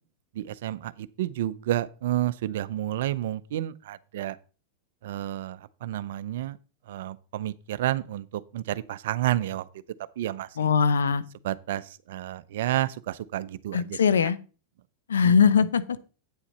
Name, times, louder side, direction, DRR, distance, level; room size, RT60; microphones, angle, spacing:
voice 1, 0.3-4.4 5.0-6.6 6.9-9.7 10.2-10.7 11.4-14.3 15.2-15.3, right 13 dB, 70° right, 0.6 m, -30 dB
voice 2, 10.6-11.2 13.7-14.4 15.1-15.8, left 6 dB, 90° left, 0.6 m, -21 dB
8.8 x 7.2 x 4.2 m
hypercardioid pair, 110°, 0 cm